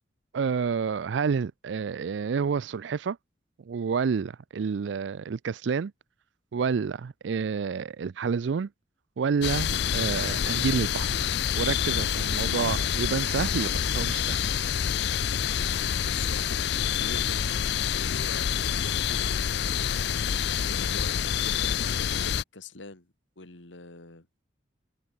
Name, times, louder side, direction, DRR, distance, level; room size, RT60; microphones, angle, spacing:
voice 1, 0.3-3.2 3.7-5.9 6.5-8.7 9.2-11.1 11.6-14.4, right 6 dB, 75° right, 0.4 m, -29 dB
sound 1, 9.4-22.4, left 8 dB, 60° left, 0.4 m, -27 dB
voice 2, 16.0-17.5 17.8-19.7 20.6-24.3, left 3 dB, 85° left, 2.5 m, -45 dB
head